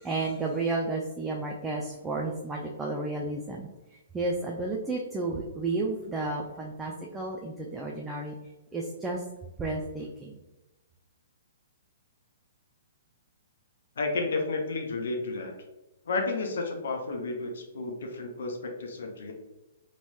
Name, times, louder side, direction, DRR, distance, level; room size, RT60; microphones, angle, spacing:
voice 1, 0.0-3.7 4.1-8.3 8.7-9.2 9.6-10.4, right 3 dB, 10° right, -1 dB, 0.4 m, -32 dB
voice 2, 14.0-15.5 16.1-19.3, left 3 dB, 65° left, 2 dB, 0.6 m, -32 dB
3.0 x 3.0 x 2.3 m, 1.0 s
figure-of-eight pair, 120°, 0 cm